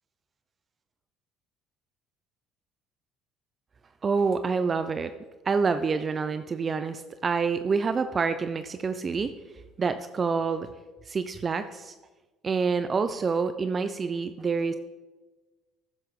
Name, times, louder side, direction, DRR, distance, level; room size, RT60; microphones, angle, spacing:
voice 1, 4.0-5.1 5.4-9.3 9.8-10.7 11.1-11.9 12.4-14.7, right 5 dB, 35° right, 10 dB, 0.6 m, -27 dB
12.5 x 9.9 x 3.7 m, 1.2 s
supercardioid pair, 85°, 0 cm